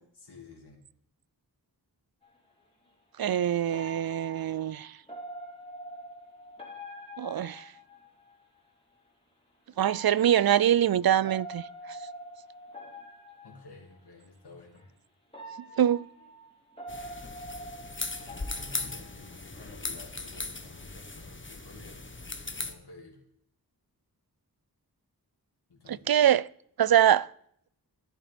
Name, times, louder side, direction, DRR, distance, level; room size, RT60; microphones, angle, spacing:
voice 1, 0.1-0.8 13.4-14.9 18.2-22.0 22.6-23.2 25.7-26.2, left 3 dB, 80° left, 2.8 m, -51 dB
sound 1, 2.2-2.4 3.7-8.5 9.7-14.0 14.8-14.9 15.3-19.7 20.1-20.4, right 1 dB, 15° left, 4.5 m, -45 dB
voice 2, 3.2-4.9 7.2-7.6 9.8-11.6 15.8-16.1 26.1-26.5 26.8-27.3, right 10 dB, 65° right, 0.5 m, -23 dB
sound 2, 16.9-22.7, left 3 dB, 30° left, 1.3 m, -38 dB
14.0 x 11.0 x 5.2 m
wide cardioid pair, 55°, 39 cm